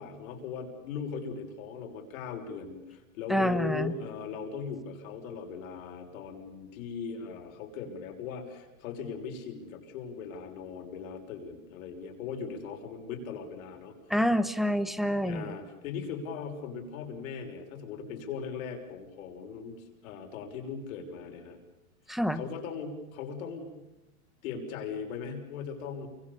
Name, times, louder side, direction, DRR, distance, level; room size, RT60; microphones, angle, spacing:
voice 1, 0.0-13.9 15.2-19.8 20.0-21.6 22.3-23.7 24.4-26.1, left 6 dB, 65° left, 3 dB, 6.1 m, -39 dB
voice 2, 3.3-3.9 14.1-15.6 22.1-22.4, equal, ahead, 13 dB, 1.3 m, -27 dB
29.0 x 25.5 x 7.2 m, 0.96 s
hypercardioid pair, 125°, 44 cm